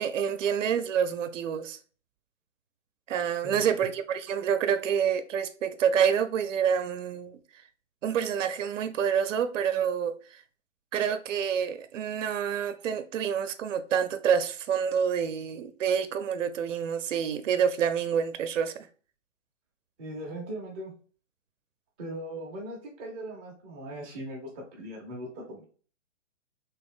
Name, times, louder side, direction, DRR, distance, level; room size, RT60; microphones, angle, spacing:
voice 1, 0.0-1.8 3.1-7.4 8.0-10.2 10.9-18.9, right 7 dB, 80° right, 0.6 m, -27 dB
voice 2, 3.4-3.9 20.0-20.9 22.0-25.7, right 1 dB, 10° right, 0.4 m, -39 dB
3.2 x 3.0 x 3.5 m
hypercardioid pair, 140°, 37 cm